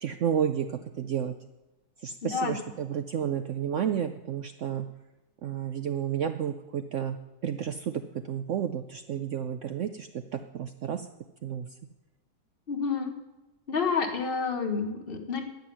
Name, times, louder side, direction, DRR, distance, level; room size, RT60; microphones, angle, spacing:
voice 1, 0.0-1.3 2.0-4.9 5.4-7.2 7.4-8.0 8.3-11.1 11.4-11.7, right 9 dB, 75° right, 9 dB, 0.7 m, -31 dB
voice 2, 12.7-13.1 13.7-15.4, left 5 dB, 35° left, 4 dB, 1.5 m, -29 dB
10.5 x 7.5 x 9.5 m, 1.0 s
omnidirectional pair, 1.9 m